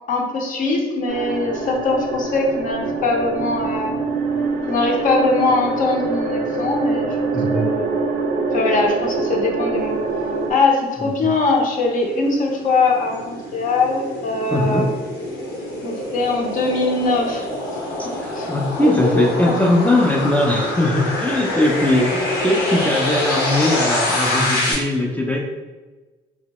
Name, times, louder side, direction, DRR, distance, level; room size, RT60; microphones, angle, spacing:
voice 1, 0.1-4.0 4.7-7.9 8.5-10.0 10.5-14.9 15.8-17.5 18.3-18.5 18.8-19.6 22.3-22.4, left 3 dB, 50° left, 0 dB, 0.6 m, -21 dB
sound 1, 1.1-10.5, right 3 dB, 70° right, 0.4 m, -24 dB
voice 2, 7.3-7.7 11.2-11.3 14.5-14.9 18.0-25.5, left 1 dB, 10° left, 0 dB, 0.3 m, -20 dB
sound 2, 11.5-24.7, left 1 dB, 90° left, 0.9 m, -26 dB
2.8 x 2.0 x 2.8 m, 1.3 s
cardioid pair, 110°, 17 cm